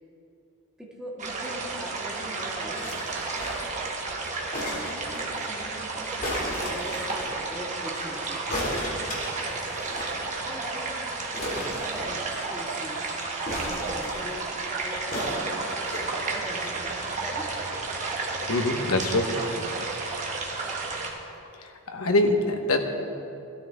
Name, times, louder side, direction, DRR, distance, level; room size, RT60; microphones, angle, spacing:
voice 1, 0.8-2.8 4.4-6.1 6.6-8.4 10.2-10.9 11.4-12.2 12.5-13.0 13.4-15.7 16.3-16.9 17.2-17.5, right 1 dB, 5° right, -4 dB, 1.7 m, -41 dB
sound 1, 1.2-21.1, right 3 dB, 35° right, 1.4 m, -32 dB
sound 2, 2.7-3.8 4.5-5.3 6.2-7.3 8.5-10.2 10.5-10.6 10.8-10.9 11.3-12.5 13.4-14.4 15.1-16.1 16.8-16.9, left 1 dB, 40° left, 2.5 m, -34 dB
voice 2, 18.5-19.3 19.6-19.7 21.9-22.8, left 2 dB, 70° left, 4 dB, 1.1 m, -24 dB
16.5 x 12.5 x 3.5 m, 2.7 s
head